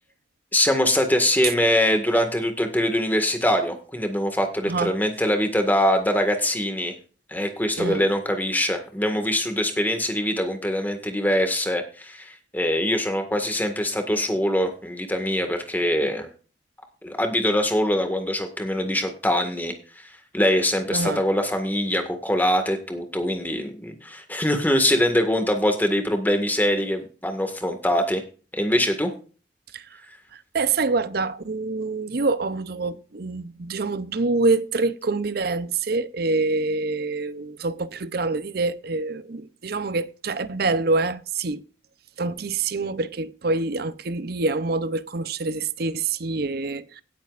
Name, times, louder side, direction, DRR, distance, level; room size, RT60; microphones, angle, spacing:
voice 1, 0.5-7.0 7.3-16.3 17.0-28.2 28.5-29.1, left 1 dB, 10° left, 1.8 m, -23 dB
voice 2, 4.6-5.0 7.8-8.0 20.9-21.2 29.7-29.9 30.3-41.6 42.2-47.0, right 3 dB, 55° right, 0.7 m, -26 dB
18.0 x 8.5 x 2.5 m
head